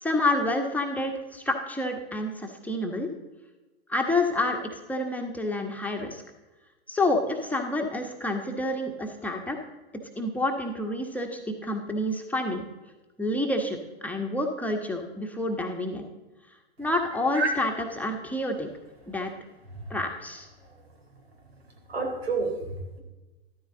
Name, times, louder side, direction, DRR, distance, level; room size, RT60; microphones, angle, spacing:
voice 1, 0.0-3.1 3.9-6.2 6.9-9.6 10.2-12.6 13.2-16.1 16.8-18.7 19.1-19.3 19.9-20.5, left 2 dB, 5° left, 2 dB, 1.3 m, -28 dB
voice 2, 21.9-23.0, right 3 dB, 80° right, 2 dB, 3.7 m, -29 dB
14.0 x 12.5 x 3.9 m, 1.1 s
hypercardioid pair, 105°, 31 cm